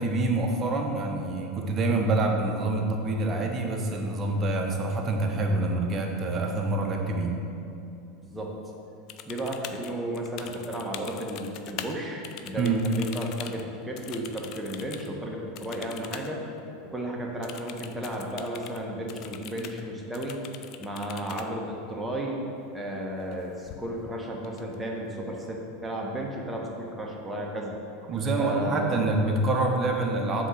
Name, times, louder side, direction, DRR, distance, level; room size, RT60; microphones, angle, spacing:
voice 1, 0.0-7.4 12.6-12.8 28.1-30.5, right 2 dB, 30° right, 2 dB, 0.9 m, -26 dB
voice 2, 8.2-8.6 9.2-16.4 16.8-20.4 20.8-22.4 22.7-27.8 28.4-29.0, right 1 dB, 10° right, -1 dB, 1.2 m, -34 dB
sound 1, 9.1-12.0 12.2-15.1 15.6-16.3 16.6-16.7 17.4-18.8 19.1-19.8 20.1-21.5 23.2-23.4 23.7-24.1 24.4-25.1, left 10 dB, 45° left, 0.4 m, -42 dB
7.7 x 3.1 x 6.1 m, 2.7 s
figure-of-eight pair, 80°, 0 cm